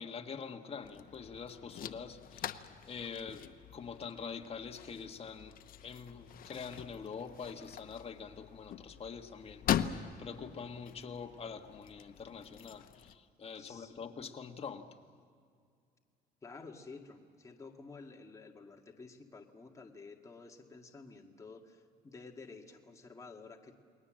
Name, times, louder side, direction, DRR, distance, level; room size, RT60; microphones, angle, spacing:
voice 1, 0.0-14.9, left 6 dB, 35° left, 4 dB, 1.7 m, -45 dB
sound 1, 0.8-13.1, left 10 dB, 60° left, 0.9 m, -42 dB
voice 2, 13.6-14.1 16.4-23.7, left 4 dB, 20° left, 2 dB, 2.0 m, -51 dB
29.5 x 21.0 x 7.6 m, 2.2 s
cardioid pair, 130°, 17 cm